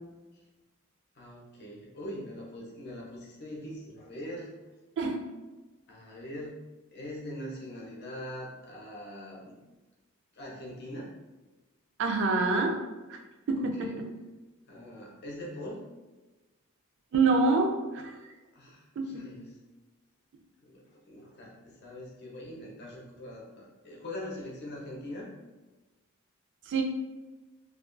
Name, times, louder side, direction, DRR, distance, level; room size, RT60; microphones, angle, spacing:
voice 1, 1.2-4.5 5.9-6.6 6.9-9.5 10.3-11.2 13.6-14.0 14.7-15.8 18.5-19.6 20.6-25.3, left 1 dB, 50° left, -4 dB, 0.6 m, -42 dB
voice 2, 12.0-12.8 13.1-13.2 13.5-14.0 17.1-18.1 19.0-19.2 26.7-26.8, right 3 dB, 60° right, 3 dB, 0.4 m, -26 dB
2.3 x 2.2 x 2.4 m, 1.2 s
head